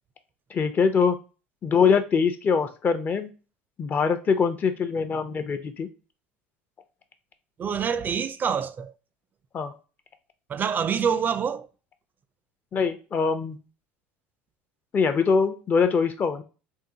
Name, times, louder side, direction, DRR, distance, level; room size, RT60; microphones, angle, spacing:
voice 1, 0.5-1.2 1.6-3.3 3.8-5.9 9.5-9.7 12.7-13.6 14.9-16.4, left 5 dB, 35° left, 0.6 m, -23 dB
voice 2, 7.6-8.9 10.5-11.7, right 7 dB, 30° right, 0.4 m, -26 dB
3.7 x 2.5 x 2.7 m
hypercardioid pair, 90°, 6 cm